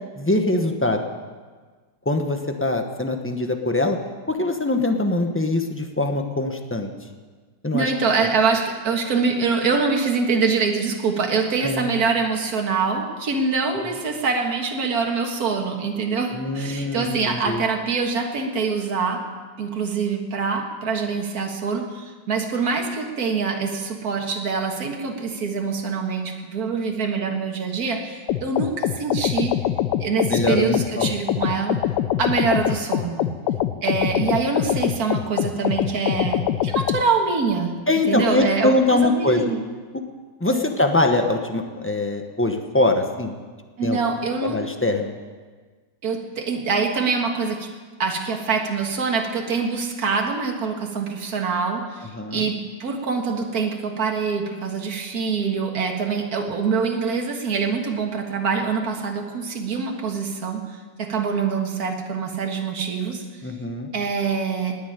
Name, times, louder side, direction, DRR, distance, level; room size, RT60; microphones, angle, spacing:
voice 1, 0.2-1.0 2.0-4.0 4.3-6.9 7.6-7.9 11.6-11.9 16.3-17.6 30.3-31.2 37.9-39.4 40.4-43.3 43.8-44.0 44.4-45.1 52.1-52.5 63.4-63.9, left 2 dB, 10° left, 4 dB, 0.7 m, -23 dB
voice 2, 7.7-19.2 19.6-29.5 30.0-31.8 32.2-33.3 33.8-37.7 38.1-39.6 40.5-40.7 43.8-44.6 46.0-47.7 48.0-60.7 61.0-63.2 63.9-64.8, right 5 dB, 55° right, 2 dB, 2.1 m, -24 dB
sound 1, 28.3-37.0, left 11 dB, 75° left, 1.2 m, -23 dB
19.0 x 7.1 x 9.3 m, 1.5 s
omnidirectional pair, 2.0 m